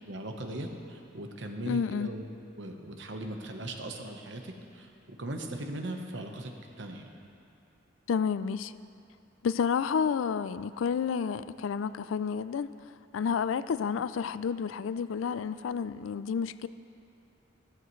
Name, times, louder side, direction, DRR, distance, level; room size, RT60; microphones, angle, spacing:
voice 1, 0.1-2.2 2.6-7.1, right 1 dB, 65° right, 3 dB, 1.1 m, -39 dB
voice 2, 1.7-2.1 8.1-8.7 9.4-12.7 13.1-16.7, left 6 dB, 85° left, 15 dB, 0.3 m, -30 dB
14.5 x 13.5 x 3.2 m, 2.6 s
head